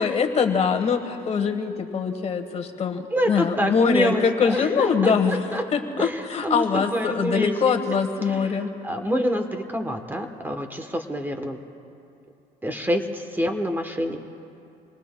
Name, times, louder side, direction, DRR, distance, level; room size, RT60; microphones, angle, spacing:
voice 1, 0.0-8.7, left 6 dB, 40° left, 5 dB, 1.3 m, -23 dB
voice 2, 3.1-5.6 6.0-7.8 8.3-11.6 12.6-14.2, equal, 10° right, 5 dB, 1.0 m, -27 dB
27.0 x 21.5 x 2.3 m, 2.7 s
cardioid pair, 110°, 17 cm